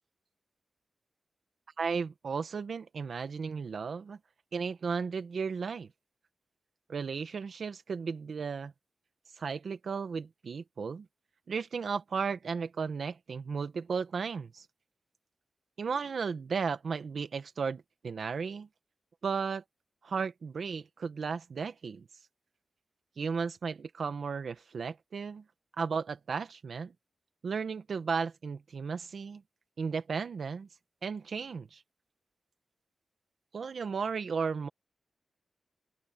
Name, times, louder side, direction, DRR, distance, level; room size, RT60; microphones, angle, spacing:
voice 1, 1.8-4.2 4.5-5.9 6.9-8.7 9.4-11.0 11.5-14.6 15.8-18.7 19.2-19.6 20.0-22.1 23.2-25.4 25.8-26.9 27.4-29.4 29.8-30.7 31.0-31.8 33.5-34.7, right 5 dB, 60° right, 1.4 m, -34 dB
open air
wide cardioid pair, 160°, 0 cm